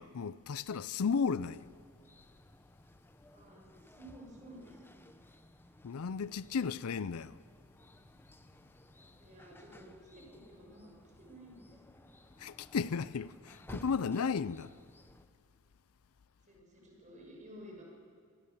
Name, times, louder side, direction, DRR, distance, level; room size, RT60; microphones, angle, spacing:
voice 1, 0.0-1.7 5.8-7.4 12.4-14.7, left 5 dB, 80° left, 0.5 m, -34 dB
sound 1, 1.5-15.3, left 1 dB, 10° left, 0.8 m, -57 dB
voice 2, 3.3-5.4 9.2-10.9 11.2-12.0 16.5-17.8, right 1 dB, 35° right, 6.5 m, -54 dB
25.0 x 18.5 x 7.2 m
head